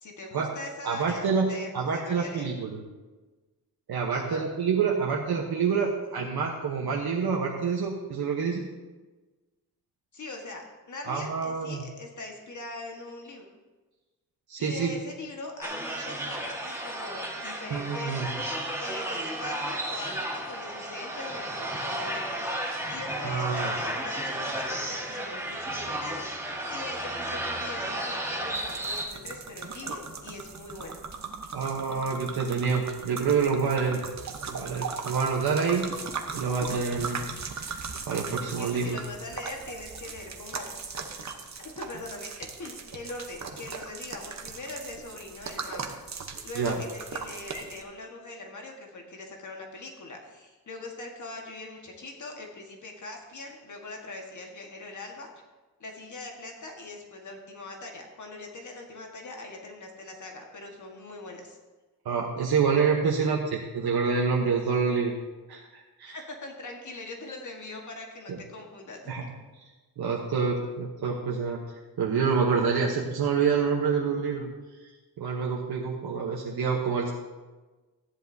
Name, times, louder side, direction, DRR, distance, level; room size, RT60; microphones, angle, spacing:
voice 1, 0.0-2.5 4.1-4.4 10.1-13.5 14.6-18.5 18.8-31.0 38.4-40.9 41.1-41.2 41.6-42.3 42.6-45.9 46.4-55.3 55.8-61.6 66.1-69.1, left 2 dB, 55° left, 1 dB, 1.6 m, -42 dB
voice 2, 0.8-2.8 3.9-8.7 11.0-11.8 14.5-14.9 17.7-18.3 23.2-23.8 31.5-34.0 34.4-36.0 36.3-37.2 37.6-39.0 46.5-46.8 62.0-65.2 65.5-66.2 68.3-68.4 69.1-69.2 69.6-69.7 70.0-74.5 74.8-74.9 75.2-77.1, right 5 dB, 90° right, -2 dB, 1.2 m, -27 dB
sound 1, 15.6-29.1, right 1 dB, 5° right, 1.7 m, -33 dB
sound 2, 28.5-47.8, right 5 dB, 50° right, 1.1 m, -39 dB
14.5 x 10.5 x 2.8 m, 1.2 s
wide cardioid pair, 110°, 36 cm